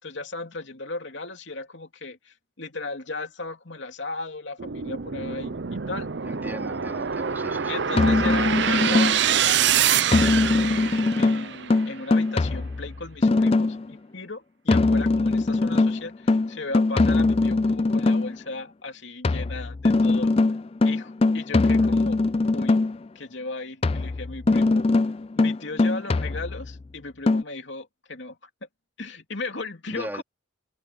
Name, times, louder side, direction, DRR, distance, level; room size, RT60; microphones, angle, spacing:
voice 1, 0.0-6.1 7.7-20.3 20.8-22.2 22.5-22.8 23.1-24.9 25.4-28.5 29.0-30.2, left 3 dB, 65° left, 2.9 m, -36 dB
sound 1, 4.6-11.9, right 8 dB, 60° right, 0.7 m, -25 dB
voice 2, 6.2-7.8 29.9-30.2, right 1 dB, 10° right, 3.8 m, -38 dB
sound 2, 7.9-9.4 10.1-13.9 14.7-18.4 19.2-23.1 23.8-26.8 27.3-27.4, left 3 dB, 30° left, 0.4 m, -21 dB
open air
head